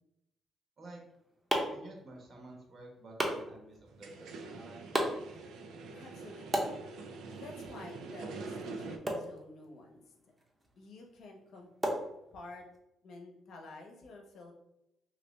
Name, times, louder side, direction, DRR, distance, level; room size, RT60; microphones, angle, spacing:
sound 1, 0.8-12.8, right 1 dB, 20° right, 0.7 m, -39 dB
voice 1, 1.7-4.8, right 2 dB, 50° right, 0 dB, 1.1 m, -51 dB
sound 2, 3.9-9.0, right 3 dB, 85° right, 0.4 m, -45 dB
voice 2, 5.9-6.8 7.3-10.0 10.7-11.7 12.3-12.7 13.0-14.5, left 2 dB, 70° left, 1 dB, 0.8 m, -50 dB
3.0 x 2.8 x 3.1 m, 0.84 s
cardioid pair, 90°, 0 cm